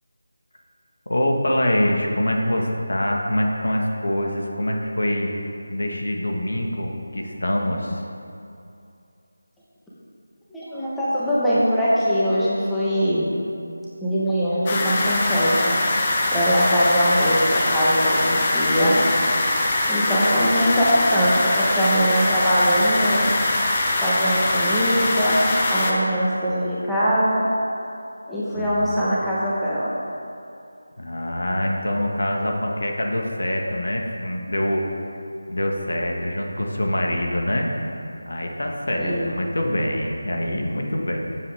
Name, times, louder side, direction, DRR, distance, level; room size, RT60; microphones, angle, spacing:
voice 1, 1.1-5.3 5.7-8.0 28.5-28.8 31.0-34.9 35.5-37.7 38.3-41.2, left 1 dB, 85° left, 0 dB, 1.6 m, -24 dB
voice 2, 10.5-13.3 14.0-15.8 16.3-19.0 19.9-23.3 24.0-25.4 25.7-27.4 28.3-29.9 39.0-39.3, equal, 5° left, -11 dB, 1.1 m, -21 dB
sound 1, 14.7-25.9, left 2 dB, 20° left, 0.8 m, -22 dB
14.5 x 7.4 x 3.5 m, 2.6 s
figure-of-eight pair, 170°, 0 cm